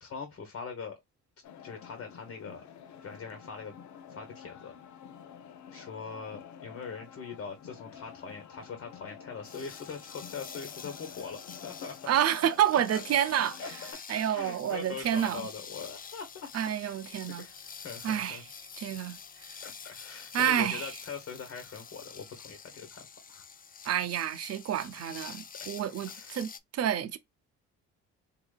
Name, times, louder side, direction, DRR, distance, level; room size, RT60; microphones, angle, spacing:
voice 1, 0.0-1.0 1.6-2.6 3.0-3.7 4.1-4.7 5.7-12.0 13.6-13.7 14.3-16.5 16.8-16.9 17.3-18.4 19.6-23.4 25.6-25.7 26.1-26.4, left 5 dB, 50° left, 1.3 m, -42 dB
sound 1, 1.4-13.9, left 8 dB, 70° left, 0.8 m, -49 dB
sound 2, 9.4-26.6, left 6 dB, 30° left, 0.5 m, -47 dB
voice 2, 12.1-13.6 14.1-15.5 16.5-17.5 18.0-18.4 18.8-19.2 20.3-20.9 23.8-27.2, right 10 dB, 55° right, 0.7 m, -29 dB
3.7 x 2.9 x 2.3 m
cardioid pair, 90°, 30 cm